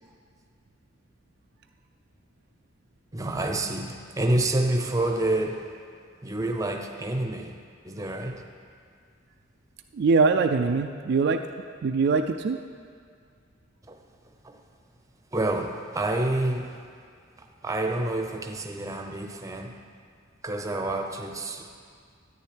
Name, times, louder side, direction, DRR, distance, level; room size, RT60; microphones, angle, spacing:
voice 1, 3.1-5.7 6.2-8.4 13.9-14.0 14.4-14.6 15.3-16.8 17.4-19.8 20.4-21.7, right 1 dB, 15° right, 0.7 m, -28 dB
voice 2, 9.9-11.4 11.8-12.6, right 4 dB, 55° right, 0.3 m, -22 dB
13.5 x 9.2 x 3.4 m
head